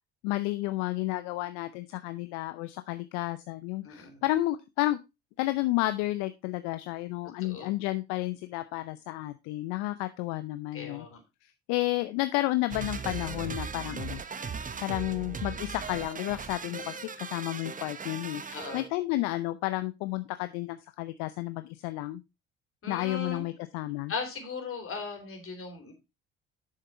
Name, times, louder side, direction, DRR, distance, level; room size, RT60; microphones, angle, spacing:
voice 1, 0.2-5.0 5.4-11.1 11.4-14.2 14.8-22.2 22.9-24.1, left 17 dB, 75° left, 11 dB, 0.6 m, -31 dB
voice 2, 3.8-4.2 7.4-7.7 10.7-11.2 18.5-18.8 22.8-23.4 24.1-25.9, left 4 dB, 45° left, 4 dB, 3.7 m, -38 dB
sound 1, 12.7-18.9, right 5 dB, 25° right, 1.0 m, -38 dB
7.4 x 6.6 x 4.3 m, 0.24 s
hypercardioid pair, 60°, 30 cm